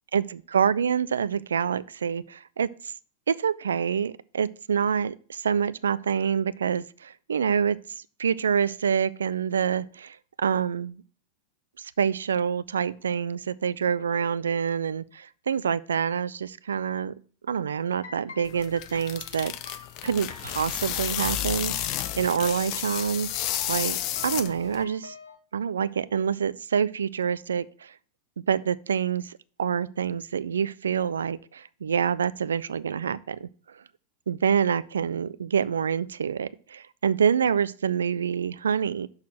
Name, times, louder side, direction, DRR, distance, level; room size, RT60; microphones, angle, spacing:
voice 1, 0.1-2.7 3.3-7.8 8.2-11.0 11.8-17.1 17.5-21.8 22.2-24.0 24.2-25.1 25.5-27.9 28.5-33.8 34.3-39.1, right 7 dB, 70° right, 0.3 m, -27 dB
sound 1, 18.0-25.4, left 5 dB, 65° left, 1.0 m, -47 dB
sound 2, 18.5-24.8, left 12 dB, 40° left, 0.6 m, -31 dB
6.3 x 5.6 x 6.0 m
figure-of-eight pair, 90°, 0 cm